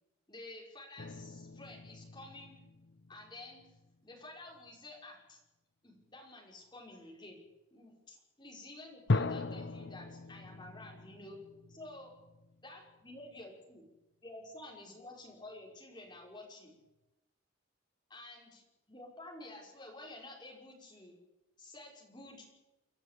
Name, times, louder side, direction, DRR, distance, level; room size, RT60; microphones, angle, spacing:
voice 1, 0.3-2.6 3.1-3.8 4.0-5.4 5.8-7.4 7.7-11.4 11.7-12.1 12.6-13.8 14.2-16.7 18.1-21.2 21.6-22.4, left 2 dB, 20° left, -2 dB, 5.6 m, -51 dB
sound 1, 1.0-4.0 4.5-4.8 9.1-13.4, left 3 dB, 60° left, 0.7 m, -39 dB
29.5 x 11.0 x 8.6 m, 0.99 s
head